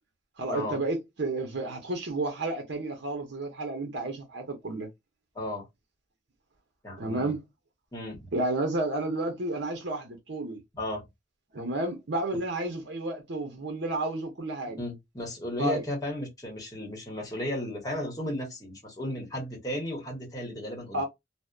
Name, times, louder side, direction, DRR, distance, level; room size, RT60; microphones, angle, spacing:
voice 1, 0.4-4.9 7.0-7.4 8.3-10.6 11.5-14.8 15.6-15.8 20.9-21.0, right 2 dB, 65° right, 0.7 m, -31 dB
voice 2, 5.3-5.7 6.8-7.3 7.9-8.3 10.7-11.0 14.8-21.0, left 1 dB, 20° left, 1.0 m, -34 dB
2.7 x 2.1 x 2.2 m
head